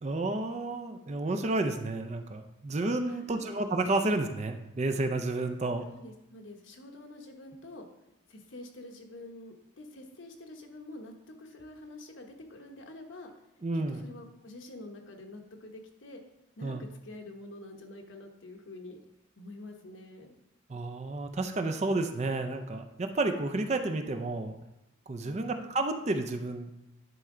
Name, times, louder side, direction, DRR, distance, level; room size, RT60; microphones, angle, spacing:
voice 1, 0.0-5.9 13.6-14.0 16.6-16.8 20.7-24.6 25.1-26.7, right 2 dB, 35° right, 6 dB, 0.5 m, -31 dB
voice 2, 3.1-3.5 5.9-7.9 8.3-11.1 11.4-13.3 13.7-16.2 16.6-19.0 19.4-20.3 25.2-25.7, left 2 dB, 70° left, 3 dB, 1.1 m, -47 dB
11.0 x 4.4 x 3.8 m, 0.93 s
head